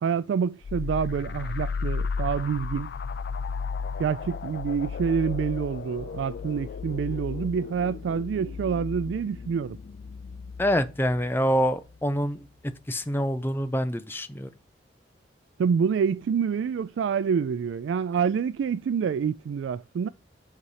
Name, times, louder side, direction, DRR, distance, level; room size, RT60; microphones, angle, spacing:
voice 1, 0.0-2.9 4.0-9.8 15.6-20.1, right 6 dB, 80° right, 0.3 m, -27 dB
sound 1, 0.6-12.0, left 5 dB, 60° left, 0.3 m, -34 dB
voice 2, 10.6-12.4 12.9-14.5, equal, 10° left, 0.6 m, -26 dB
8.2 x 4.2 x 4.9 m
head